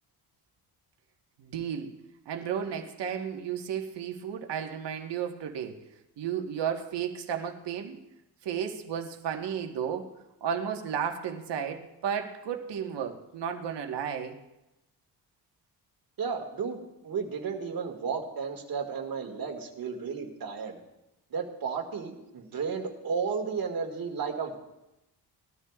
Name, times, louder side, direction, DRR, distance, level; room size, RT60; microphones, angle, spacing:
voice 1, 1.4-1.9 2.2-5.8 6.2-8.0 8.4-10.1 10.4-14.3, right 8 dB, 90° right, 4 dB, 1.4 m, -33 dB
voice 2, 16.2-20.8 21.3-24.6, right 5 dB, 55° right, 2 dB, 2.0 m, -33 dB
20.5 x 13.0 x 2.4 m, 0.93 s
cardioid pair, 140°, 41 cm